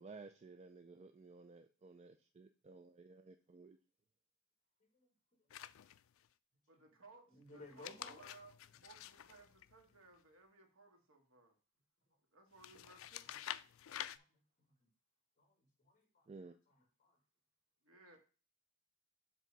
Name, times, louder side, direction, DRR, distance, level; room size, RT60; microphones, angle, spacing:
voice 1, 0.0-3.8 16.3-16.5, right 3 dB, 30° right, 0.4 m, -55 dB
sound 1, 5.5-6.3 7.6-10.2 12.6-14.2, left 11 dB, 70° left, 0.4 m, -49 dB
voice 2, 6.7-11.5 12.3-13.5 17.8-18.2, right 2 dB, 80° right, 1.8 m, -62 dB
voice 3, 7.3-8.3 14.1-14.7 15.4-15.5 15.8-16.3 17.0-17.2, left 2 dB, 40° left, 2.1 m, -57 dB
7.4 x 3.4 x 5.3 m
head